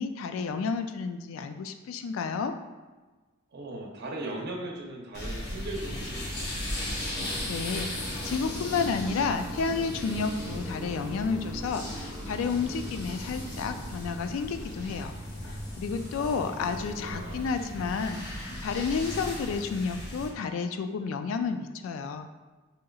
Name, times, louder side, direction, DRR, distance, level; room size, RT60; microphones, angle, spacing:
voice 1, 0.0-2.5 7.5-15.1 15.5-22.3, left 5 dB, 75° left, 8 dB, 0.3 m, -31 dB
voice 2, 3.5-6.3 16.0-17.5, right 2 dB, 55° right, -1 dB, 0.7 m, -39 dB
sound 1, 4.8-15.1, right 2 dB, 20° right, 0.3 m, -46 dB
sound 2, 5.1-20.3, left 1 dB, 55° left, 0.8 m, -37 dB
5.1 x 2.7 x 2.3 m, 1.3 s
head